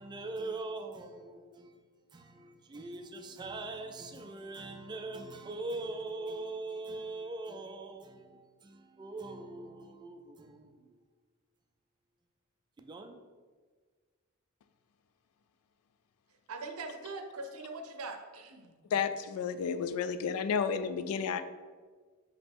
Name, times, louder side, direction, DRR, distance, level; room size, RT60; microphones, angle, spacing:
voice 1, 0.0-1.7 2.1-11.0 12.8-13.2, right 2 dB, 20° right, 0.3 m, -42 dB
voice 2, 16.5-18.7, right 3 dB, 90° right, 0.6 m, -42 dB
voice 3, 18.9-21.4, left 6 dB, 80° left, 0.3 m, -31 dB
5.1 x 2.9 x 3.6 m
head